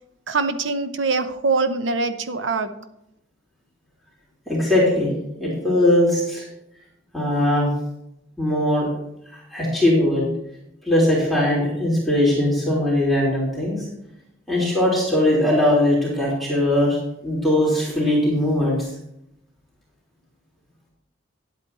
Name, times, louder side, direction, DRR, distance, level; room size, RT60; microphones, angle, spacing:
voice 1, 0.3-2.7, right 3 dB, 85° right, 10 dB, 0.9 m, -23 dB
voice 2, 4.5-5.1 5.4-6.4 7.1-7.7 8.4-8.9 9.5-10.3 10.9-13.8 14.5-17.0 17.2-18.8, left 1 dB, ahead, -7 dB, 3.4 m, -20 dB
10.5 x 8.4 x 4.2 m, 0.80 s
head